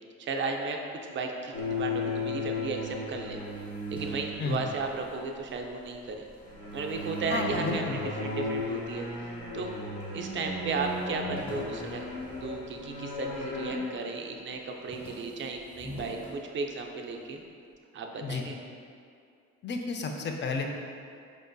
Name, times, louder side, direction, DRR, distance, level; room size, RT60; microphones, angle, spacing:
voice 1, 0.2-0.8 1.1-3.4 3.9-6.3 6.7-9.1 9.5-9.7 10.1-12.0 12.3-17.4 17.9-18.6, right 4 dB, 40° right, 2 dB, 0.4 m, -35 dB
sound 1, 1.5-5.1 6.4-13.8, left 2 dB, 85° left, 1.0 m, -35 dB
sound 2, 3.3-6.0 6.3-8.8 9.4-10.1 10.4-10.5 10.8-13.3 13.7-14.2 14.5-17.1, equal, 15° left, 1.1 m, -48 dB
voice 2, 7.3-8.0 18.2-18.4 19.6-20.7, left 4 dB, 35° left, 2 dB, 0.4 m, -31 dB
4.7 x 2.5 x 2.2 m, 2.4 s
cardioid pair, 90°, 30 cm